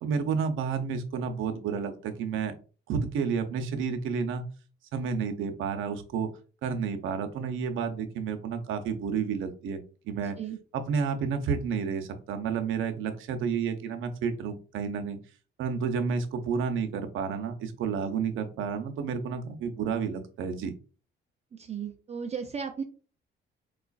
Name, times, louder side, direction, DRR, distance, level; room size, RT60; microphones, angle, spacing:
voice 1, 0.0-2.5 2.9-4.5 4.9-6.3 6.6-10.4 10.7-15.2 15.6-20.7, right 6 dB, 80° right, 7 dB, 0.7 m, -30 dB
voice 2, 21.5-22.8, right 6 dB, 35° right, 6 dB, 0.5 m, -35 dB
4.6 x 2.4 x 2.3 m, 0.36 s
cardioid pair, 90°, 20 cm